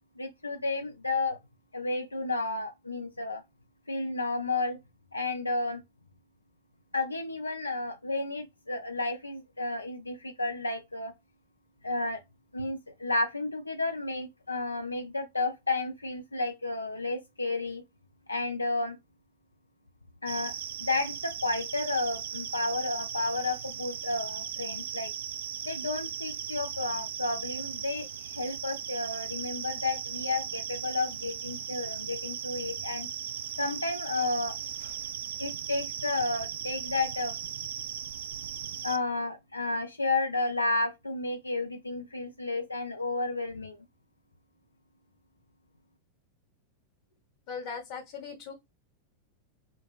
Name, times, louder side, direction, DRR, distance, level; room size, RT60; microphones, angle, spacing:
voice 1, 0.2-1.4 1.7-3.4 3.9-4.8 5.1-5.8 6.9-11.1 11.8-12.2 12.5-17.8 18.3-19.0 20.2-20.5 20.8-25.1 25.6-33.1 33.6-34.6 35.4-37.4 38.8-43.8, left 2 dB, 80° left, 0.5 m, -32 dB
sound 1, 20.3-39.0, right 9 dB, 60° right, 0.3 m, -37 dB
voice 2, 47.5-48.5, left 5 dB, 50° left, 1.0 m, -39 dB
3.9 x 2.3 x 2.4 m
figure-of-eight pair, 90°, 0 cm